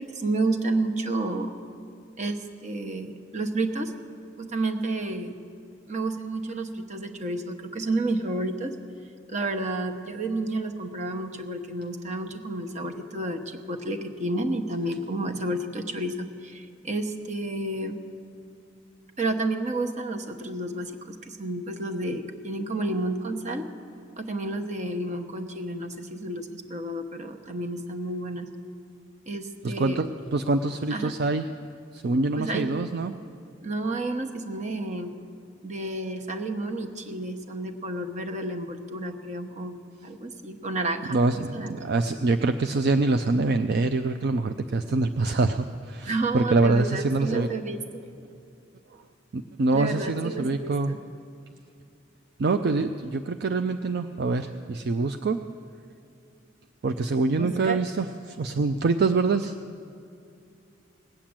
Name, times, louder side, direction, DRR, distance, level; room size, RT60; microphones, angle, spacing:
voice 1, 0.0-1.5 2.2-3.9 4.4-5.4 5.9-8.8 9.3-18.0 19.2-23.7 24.2-28.5 29.3-30.0 30.9-31.2 32.4-32.7 33.6-35.1 35.6-41.2 41.5-41.7 46.0-48.1 49.7-51.0 57.3-57.8, right 2 dB, 40° right, 5 dB, 1.1 m, -30 dB
voice 2, 29.6-31.5 31.9-33.1 41.1-47.5 49.3-50.9 52.4-55.4 56.8-59.5, right 3 dB, 60° right, 8 dB, 0.5 m, -25 dB
19.0 x 7.5 x 8.8 m, 2.4 s
head